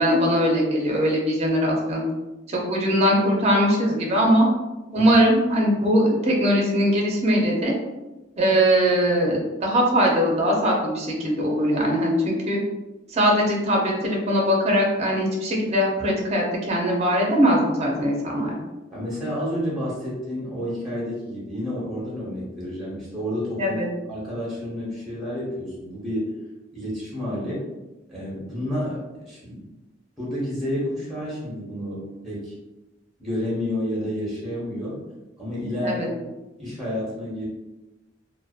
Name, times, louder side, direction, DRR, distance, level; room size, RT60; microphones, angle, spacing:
voice 1, 0.0-2.0 2.5-4.5 4.9-7.7 8.4-12.6 13.1-18.5 23.6-23.9 35.8-36.1, equal, 35° right, -1 dB, 0.5 m, -21 dB
voice 2, 18.9-23.8 24.1-26.3 26.7-27.7 28.1-29.7 30.2-32.5 33.2-35.0 35.4-36.3 36.6-37.5, left 1 dB, ahead, -7 dB, 0.8 m, -30 dB
2.6 x 2.1 x 2.3 m, 1.0 s
head